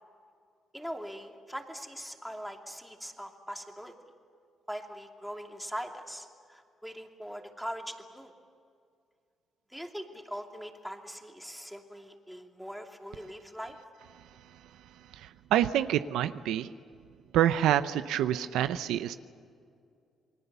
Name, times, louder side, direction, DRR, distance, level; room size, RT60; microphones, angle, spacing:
voice 1, 0.7-3.9 4.7-8.3 9.7-13.8, equal, ahead, 2 dB, 2.8 m, -41 dB
voice 2, 15.1-16.7 17.3-19.2, right 11 dB, 90° right, 12 dB, 0.7 m, -27 dB
29.0 x 21.0 x 7.0 m, 2.3 s
cardioid pair, 90°, 0 cm